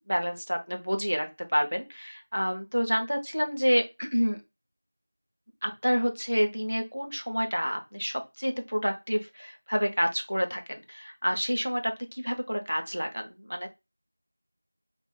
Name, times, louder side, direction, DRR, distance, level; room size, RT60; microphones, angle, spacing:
voice 1, 0.1-4.4 5.6-13.7, equal, 55° right, 4 dB, 0.7 m, -29 dB
2.5 x 2.3 x 3.6 m, 0.24 s
figure-of-eight pair, 180°, 0 cm